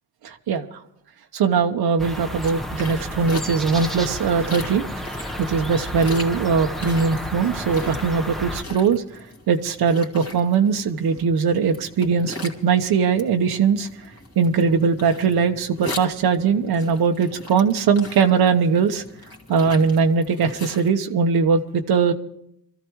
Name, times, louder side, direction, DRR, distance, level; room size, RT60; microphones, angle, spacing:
voice 1, 0.2-0.8 1.3-4.8 5.4-9.0 9.5-13.9 14.4-19.0 19.5-22.1, right 5 dB, 85° right, 4 dB, 1.1 m, -20 dB
sound 1, 2.0-8.6, equal, ahead, 1.1 m, -31 dB
sound 2, 2.4-20.9, left 2 dB, 40° left, 2.5 m, -40 dB
24.0 x 14.0 x 3.1 m, 0.74 s
cardioid pair, 105°, 37 cm